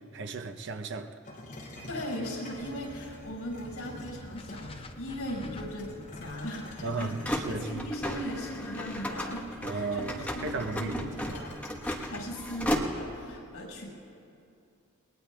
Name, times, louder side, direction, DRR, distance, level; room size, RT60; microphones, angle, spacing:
voice 1, 0.1-1.2 6.8-7.9 9.6-11.1, right 3 dB, 55° right, 0.8 m, -35 dB
sound 1, 1.2-4.9 5.6-12.2, left 1 dB, 45° left, 3.5 m, -47 dB
voice 2, 1.9-7.2 7.5-11.6 12.1-13.9, equal, 85° left, 5.3 m, -38 dB
sound 2, 2.6-13.3, equal, 5° left, 1.2 m, -36 dB
sound 3, 4.3-8.5, left 2 dB, 25° left, 0.7 m, -49 dB
29.0 x 21.0 x 2.3 m
head